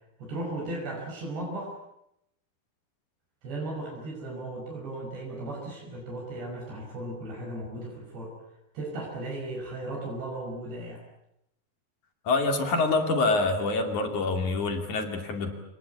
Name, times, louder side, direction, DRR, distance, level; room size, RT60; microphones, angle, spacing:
voice 1, 0.2-1.7 3.4-8.3 8.7-11.0, right 1 dB, 70° right, -1 dB, 7.5 m, -36 dB
voice 2, 12.3-15.5, left 3 dB, 50° left, 4 dB, 3.7 m, -26 dB
27.5 x 20.0 x 8.3 m, 0.83 s
omnidirectional pair, 5.0 m